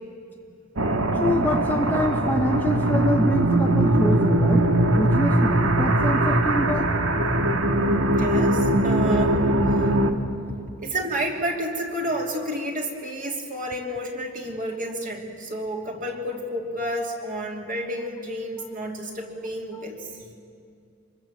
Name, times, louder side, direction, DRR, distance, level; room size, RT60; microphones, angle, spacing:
sound 1, 0.8-10.1, right 1 dB, 60° right, 1.6 m, -21 dB
voice 1, 1.1-6.9 18.6-18.7 19.7-19.8, left 1 dB, 10° left, 3 dB, 0.8 m, -26 dB
voice 2, 8.2-9.4 9.7-9.9 10.8-20.2, right 1 dB, 35° right, 1 dB, 3.0 m, -30 dB
26.0 x 21.5 x 7.6 m, 2.6 s
head